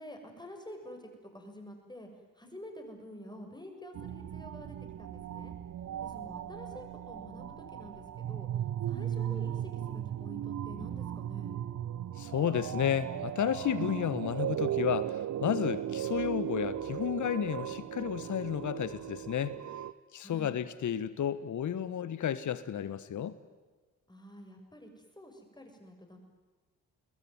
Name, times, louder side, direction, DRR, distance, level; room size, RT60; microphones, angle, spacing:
voice 1, 0.0-2.1 2.3-5.5 6.0-8.5 8.8-11.5 20.2-20.6 24.1-26.2, left 1 dB, 10° left, 4 dB, 6.5 m, -48 dB
sound 1, 3.9-19.9, right 11 dB, 40° right, 0.9 m, -37 dB
voice 2, 12.2-19.6 20.1-23.4, left 9 dB, 45° left, 15 dB, 1.4 m, -32 dB
30.0 x 21.0 x 9.6 m, 1.3 s
figure-of-eight pair, 40°, 43 cm